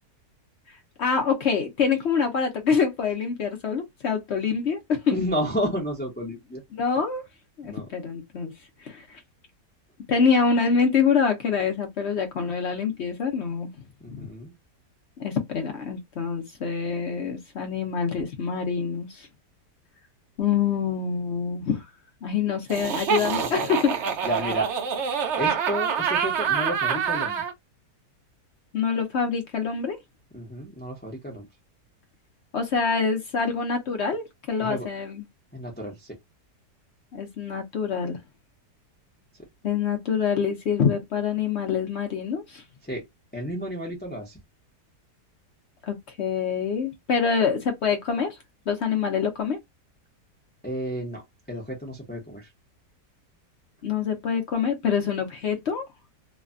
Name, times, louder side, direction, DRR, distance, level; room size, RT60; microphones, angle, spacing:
voice 1, 1.0-5.2 6.7-7.2 7.6-8.5 8.8-9.2 10.1-13.7 14.1-14.3 15.2-19.3 20.4-21.8 22.2-24.0 28.7-30.0 32.5-35.2 37.1-38.2 39.6-42.6 45.8-48.4 48.7-49.6 53.8-55.8, left 6 dB, 60° left, 0.7 m, -25 dB
voice 2, 5.1-6.6 7.6-7.8 14.0-14.5 24.2-24.7 25.4-27.4 30.3-31.5 34.6-34.9 35.5-35.9 42.8-43.0 43.3-44.4 50.6-51.2 51.5-52.5, equal, 15° left, 0.3 m, -31 dB
Laughter, 22.7-27.5, right 7 dB, 65° right, 0.7 m, -26 dB
3.2 x 2.2 x 2.4 m
omnidirectional pair, 1.8 m